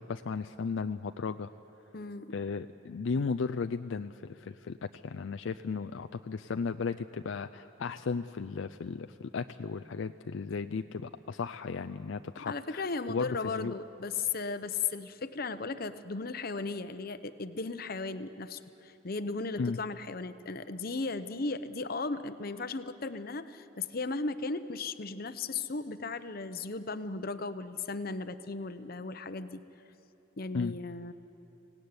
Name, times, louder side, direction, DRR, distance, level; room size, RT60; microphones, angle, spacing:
voice 1, 0.0-1.5 2.3-13.7 19.6-19.8 30.5-30.7, left 5 dB, 70° left, 8 dB, 0.4 m, -35 dB
voice 2, 1.9-2.3 12.4-29.6 30.4-31.1, left 4 dB, 50° left, 12 dB, 0.8 m, -36 dB
25.0 x 17.5 x 9.6 m, 3.0 s
head